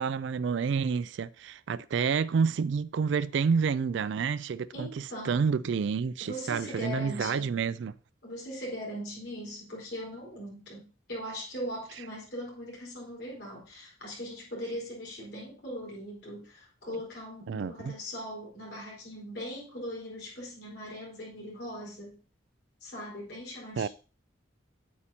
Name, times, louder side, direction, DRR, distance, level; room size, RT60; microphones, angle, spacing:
voice 1, 0.0-7.9 17.5-17.9 23.8-23.9, right 6 dB, 65° right, 0.3 m, -29 dB
voice 2, 4.7-5.4 6.2-7.5 8.2-22.2 22.8-23.9, equal, 55° left, 4.2 m, -40 dB
8.8 x 8.5 x 2.8 m
head